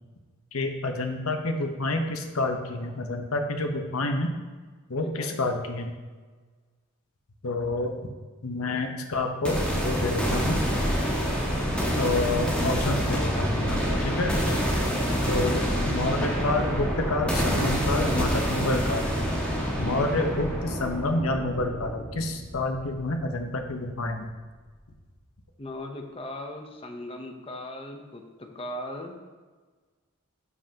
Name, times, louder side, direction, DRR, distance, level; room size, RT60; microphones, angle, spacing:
voice 1, 0.5-4.4 4.9-5.9 7.4-8.0 8.4-10.6 11.9-14.6 15.3-19.0 19.8-24.3, left 2 dB, 85° left, 4 dB, 0.9 m, -28 dB
voice 2, 5.0-5.4 14.1-14.4 19.7-20.2 25.6-29.2, left 1 dB, 25° left, 4 dB, 0.7 m, -39 dB
sound 1, 9.4-23.4, equal, 5° left, 1.3 m, -27 dB
11.0 x 5.5 x 2.9 m, 1.4 s
head